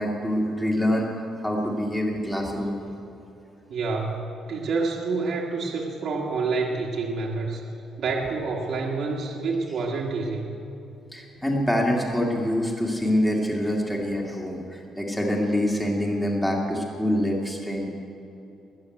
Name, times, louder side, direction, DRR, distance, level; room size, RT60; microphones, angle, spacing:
voice 1, 0.0-2.8 11.1-17.9, equal, 5° left, -1 dB, 2.1 m, -25 dB
voice 2, 3.7-4.2 4.5-7.6 8.0-10.6, right 4 dB, 45° right, -2 dB, 1.6 m, -28 dB
21.0 x 7.2 x 9.2 m, 2.9 s
cardioid pair, 170°, 0 cm